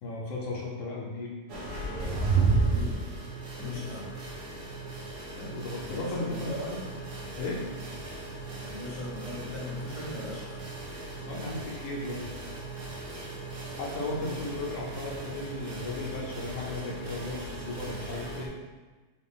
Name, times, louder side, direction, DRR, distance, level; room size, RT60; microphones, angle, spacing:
voice 1, 0.0-1.3 3.6-3.8 5.4-6.6 7.4-7.7 11.3-12.4 13.7-18.5, left 2 dB, 75° left, -3 dB, 1.0 m, -35 dB
sound 1, 1.5-18.5, right 3 dB, 70° right, 1.0 m, -34 dB
voice 2, 2.5-3.0 3.5-4.1 5.8-6.2 6.5-6.9 8.7-10.7, left 1 dB, 30° left, -6 dB, 0.9 m, -39 dB
4.5 x 2.4 x 3.3 m, 1.3 s
omnidirectional pair, 1.3 m